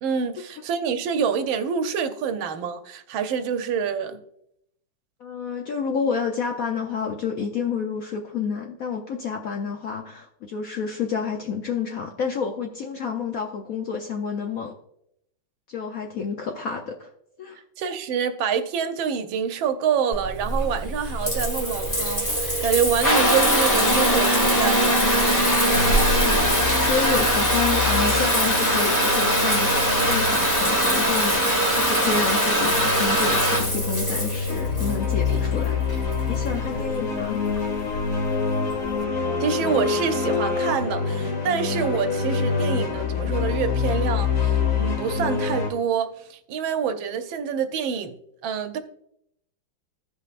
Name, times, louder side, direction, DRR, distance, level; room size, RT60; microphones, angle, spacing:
voice 1, 0.0-4.2 17.8-25.1 36.7-36.8 39.4-48.2 48.4-48.8, right 7 dB, 80° right, 1.5 m, -26 dB
voice 2, 5.2-14.7 15.7-17.1 17.4-17.6 25.8-26.5 26.8-31.4 31.7-35.9 36.3-37.4, left 5 dB, 70° left, 0.8 m, -29 dB
Water tap faucet / Bathtub (filling or washing) / Trickle dribble, 20.1-39.0, equal, 10° left, 1.2 m, -22 dB
sound 1, 25.7-45.7, left 5 dB, 50° left, 1.4 m, -27 dB
15.5 x 5.3 x 2.5 m
omnidirectional pair, 2.2 m